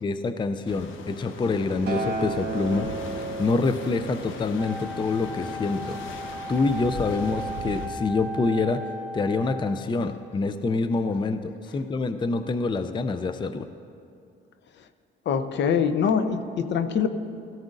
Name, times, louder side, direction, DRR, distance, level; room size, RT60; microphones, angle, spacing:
voice 1, 0.0-2.9 3.4-6.0 6.5-8.8 9.1-13.7, left 3 dB, 25° left, 10 dB, 0.4 m, -26 dB
sound 1, 0.7-7.9, left 3 dB, 80° left, 1.0 m, -38 dB
Acoustic guitar, 1.9-6.2 7.0-7.1, right 3 dB, 55° right, 1.5 m, -35 dB
Wind instrument woodwind instrument, 4.6-10.0, right 1 dB, ahead, 2.2 m, -36 dB
voice 2, 15.3-17.1, left 7 dB, 65° left, 10 dB, 0.7 m, -24 dB
16.5 x 14.0 x 2.5 m, 2.5 s
cardioid pair, 90°, 20 cm